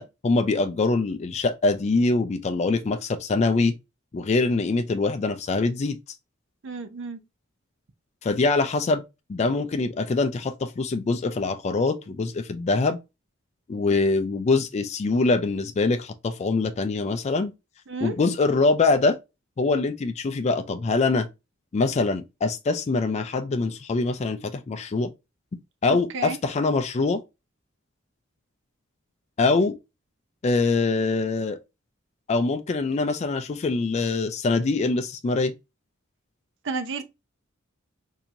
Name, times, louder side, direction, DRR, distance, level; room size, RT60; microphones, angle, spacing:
voice 1, 0.0-3.7 4.1-6.0 8.2-9.0 9.3-13.0 13.7-17.5 18.0-19.2 19.6-21.3 21.7-25.1 25.8-27.2 29.4-29.7 30.4-31.6 32.3-35.5, left 3 dB, 35° left, 0.3 m, -24 dB
voice 2, 6.6-7.2 17.9-18.1 25.9-26.4 36.6-37.0, right 4 dB, 65° right, 0.6 m, -32 dB
4.3 x 2.7 x 2.5 m
head